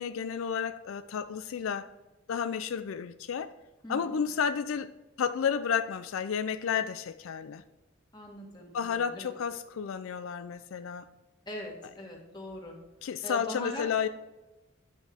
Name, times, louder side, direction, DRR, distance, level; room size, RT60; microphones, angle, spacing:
voice 1, 0.0-1.9 2.3-3.5 3.9-4.9 5.2-7.6 8.7-11.1 13.0-14.1, left 7 dB, 85° left, 0.4 m, -31 dB
voice 2, 3.8-4.2 8.1-9.3 11.5-12.8 13.2-13.9, left 1 dB, 20° left, 1.7 m, -41 dB
9.9 x 5.3 x 3.6 m
head